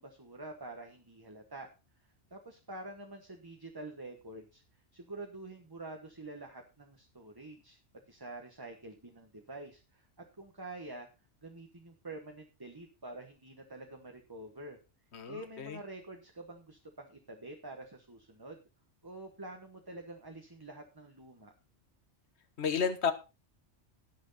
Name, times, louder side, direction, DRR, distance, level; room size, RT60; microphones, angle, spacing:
voice 1, 0.0-1.7 2.3-4.6 4.9-7.8 8.1-10.1 10.4-11.1 11.4-14.8 15.3-18.6 19.0-21.5, right 2 dB, 20° right, 3 dB, 1.2 m, -47 dB
voice 2, 15.1-15.8 22.6-23.1, left 6 dB, 65° left, 11 dB, 1.4 m, -32 dB
17.5 x 6.2 x 4.1 m, 0.30 s
omnidirectional pair, 1.2 m